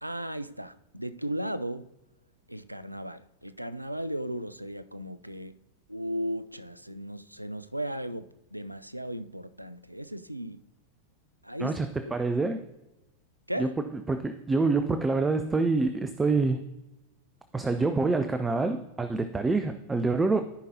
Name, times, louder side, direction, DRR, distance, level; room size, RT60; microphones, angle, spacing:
voice 1, 0.0-1.9 2.5-5.5 5.9-10.6 11.4-11.8 12.1-12.2 13.5-13.7, equal, 90° right, 0.3 m, -36 dB
voice 2, 11.6-12.6 13.6-13.7 14.1-16.6 17.5-20.4, right 3 dB, 10° right, 0.4 m, -26 dB
14.0 x 5.3 x 2.7 m
figure-of-eight pair, 90°, 0 cm